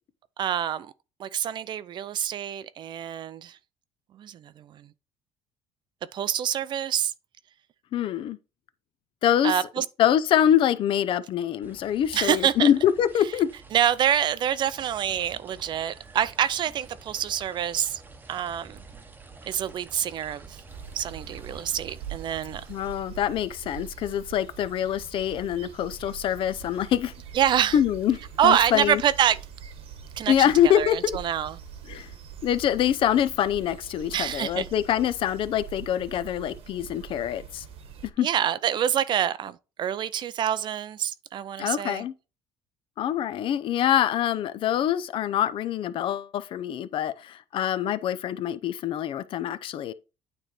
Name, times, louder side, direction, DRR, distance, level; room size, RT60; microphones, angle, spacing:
voice 1, 0.4-0.9 1.2-3.6 4.1-4.9 6.1-7.1 9.4-9.9 12.1-12.7 13.7-18.0 18.3-18.8 19.5-20.6 20.9-22.6 27.3-27.8 28.4-29.4 30.2-31.6 34.1-34.7 38.2-42.0, right 10 dB, 45° right, 0.4 m, -26 dB
voice 2, 7.9-8.4 9.2-9.5 10.0-13.5 22.7-27.1 27.7-28.2 28.4-29.0 30.3-31.0 31.9-32.1 32.4-37.6 38.2-38.3 41.6-42.1 43.0-49.9, left 10 dB, 50° left, 0.5 m, -25 dB
sound 1, 11.6-23.0, right 3 dB, 15° right, 0.9 m, -49 dB
sound 2, 20.7-38.1, right 8 dB, 60° right, 1.2 m, -43 dB
9.0 x 3.3 x 4.3 m
cardioid pair, 125°, 11 cm